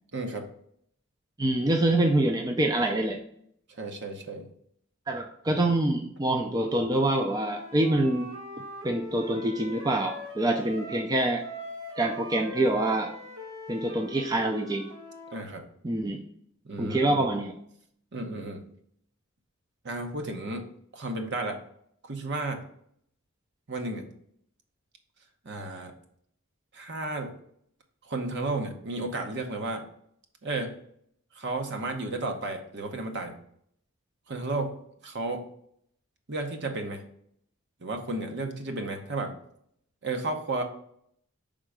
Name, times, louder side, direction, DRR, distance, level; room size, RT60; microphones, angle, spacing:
voice 1, 0.1-0.5 3.7-4.4 15.3-15.6 16.6-17.2 18.1-18.6 19.8-20.6 20.9-21.6 22.1-22.6 23.7-24.1 25.4-25.9 26.7-27.3 28.1-29.9 30.4-30.7 31.3-33.3 34.3-34.7 35.0-35.4 36.3-37.0 37.8-39.4 40.0-40.6, right 2 dB, 55° right, 4 dB, 0.9 m, -33 dB
voice 2, 1.4-3.2 5.1-8.3 8.8-11.4 12.0-13.1 13.7-14.9 15.8-16.2 16.8-17.6, right 1 dB, 20° right, 3 dB, 0.4 m, -26 dB
Wind instrument woodwind instrument, 7.3-11.1 11.4-15.4, left 1 dB, 85° right, 1.4 m, -42 dB
5.4 x 3.8 x 4.8 m, 0.67 s
head